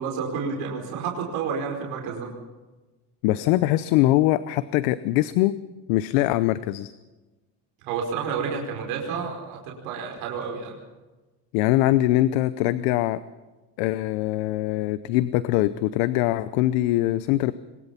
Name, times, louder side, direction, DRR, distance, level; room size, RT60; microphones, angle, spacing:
voice 1, 0.0-2.3 7.8-10.8, right 6 dB, 90° right, 0 dB, 5.0 m, -30 dB
voice 2, 3.2-5.5 5.9-6.9 11.5-13.2 13.8-17.5, left 15 dB, 85° left, 15 dB, 0.8 m, -22 dB
24.0 x 21.0 x 5.8 m, 1.2 s
supercardioid pair, 90°, 42 cm